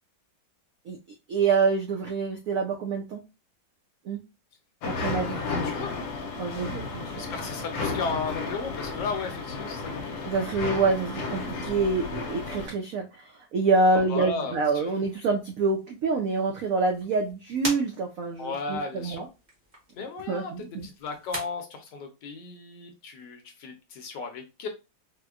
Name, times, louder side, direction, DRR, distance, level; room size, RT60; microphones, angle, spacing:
voice 1, 1.3-3.2 4.1-4.2 4.8-5.4 6.4-7.3 10.2-19.3 20.3-20.9, right 3 dB, 80° right, 2 dB, 0.7 m, -26 dB
sound 1, 4.8-12.7, left 3 dB, 90° left, 1.4 m, -33 dB
voice 2, 5.3-5.9 7.1-10.3 14.1-14.9 18.4-19.2 19.9-24.7, left 4 dB, 70° left, 5 dB, 1.2 m, -35 dB
sound 2, 14.4-21.4, right 1 dB, 30° right, 1.0 m, -43 dB
4.3 x 2.1 x 2.3 m, 0.27 s
omnidirectional pair, 2.1 m